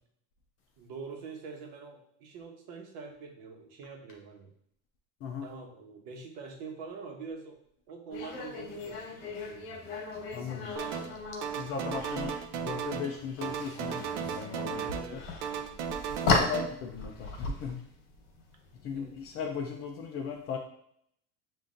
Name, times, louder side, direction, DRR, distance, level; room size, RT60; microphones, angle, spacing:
voice 1, 0.8-4.5 5.4-7.6 7.9-9.8 14.7-15.4 18.9-19.2, right 4 dB, 55° right, 2 dB, 1.1 m, -45 dB
sound 1, 8.1-19.4, left 3 dB, 60° left, 1.4 m, -36 dB
voice 2, 10.3-10.7 11.6-14.8 15.1-15.2 16.2-17.8 18.8-20.6, left 6 dB, 35° left, 2 dB, 0.4 m, -37 dB
sound 2, 10.8-11.2 11.4-13.1 13.4-15.1 15.4-16.7, right 7 dB, 85° right, 0.7 m, -35 dB
7.2 x 2.6 x 2.5 m, 0.70 s
cardioid pair, 160°, 44 cm